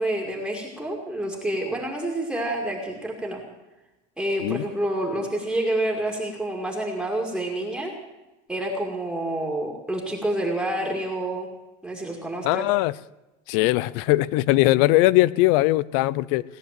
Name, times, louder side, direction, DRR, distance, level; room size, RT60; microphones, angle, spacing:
voice 1, 0.0-3.4 4.2-7.9 8.5-11.5 11.8-12.6, right 1 dB, 5° right, -1 dB, 2.3 m, -28 dB
voice 2, 12.4-12.9 13.5-16.4, left 18 dB, 65° left, 22 dB, 0.6 m, -20 dB
18.0 x 10.5 x 7.6 m, 1.0 s
supercardioid pair, 145°, 20 cm